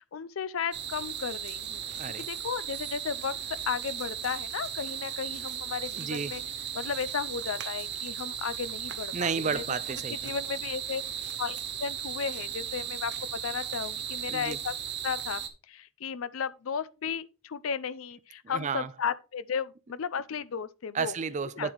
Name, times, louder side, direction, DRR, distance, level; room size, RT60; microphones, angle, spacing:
voice 1, 0.0-3.4 3.7-6.4 6.7-9.6 10.2-11.0 11.4-14.7 15.0-15.4 15.7-21.1 21.5-21.7, left 6 dB, 85° left, 0.5 m, -34 dB
sound 1, 0.7-15.5, right 9 dB, 55° right, 1.0 m, -36 dB
voice 2, 2.0-2.3 6.0-6.4 9.1-10.3 14.3-14.6 18.4-18.9 20.9-21.7, right 5 dB, 35° right, 0.4 m, -32 dB
8.8 x 7.4 x 3.1 m
head